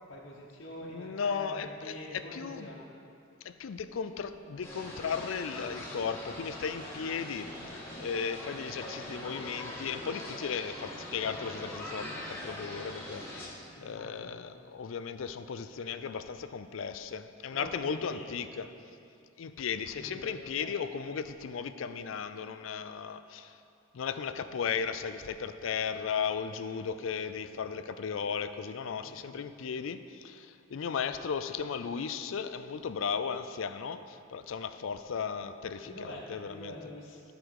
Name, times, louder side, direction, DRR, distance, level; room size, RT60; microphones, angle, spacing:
voice 1, 0.1-2.9 7.9-8.1 13.7-14.4 17.5-18.4 19.9-20.7 25.2-25.3 29.0-29.1 35.8-37.2, left 1 dB, 60° left, -7 dB, 1.0 m, -45 dB
voice 2, 0.8-2.7 3.4-18.7 19.4-23.6 23.9-36.9, left 6 dB, 75° left, 11 dB, 0.4 m, -36 dB
sound 1, 4.6-13.4, left 1 dB, 15° left, 1.8 m, -42 dB
12.5 x 5.0 x 4.7 m, 2.5 s
head